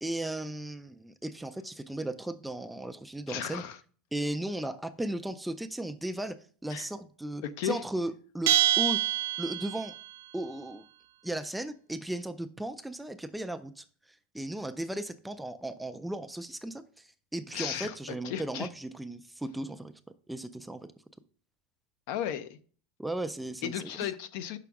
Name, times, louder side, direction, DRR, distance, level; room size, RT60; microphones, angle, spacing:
voice 1, 0.0-3.6 4.1-6.4 6.6-9.0 9.4-9.9 10.3-10.8 11.2-19.9 20.3-20.9 23.0-23.9, right 1 dB, 5° right, 0.3 m, -36 dB
voice 2, 3.3-3.8 6.7-6.9 7.4-7.8 17.5-18.7 22.1-22.6 23.6-24.6, left 10 dB, 60° left, 0.5 m, -35 dB
Bell, 8.5-10.0, right 14 dB, 80° right, 0.6 m, -26 dB
6.0 x 5.8 x 3.5 m
supercardioid pair, 150°, 0 cm